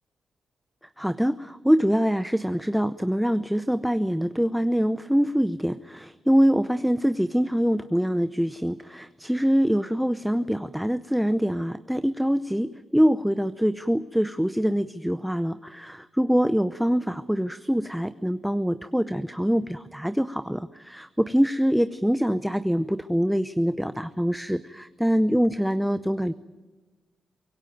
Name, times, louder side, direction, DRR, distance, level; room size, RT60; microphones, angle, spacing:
voice 1, 1.0-26.3, equal, ahead, 13 dB, 0.7 m, -24 dB
25.0 x 18.0 x 9.3 m, 1.3 s
cardioid pair, 85°, 0 cm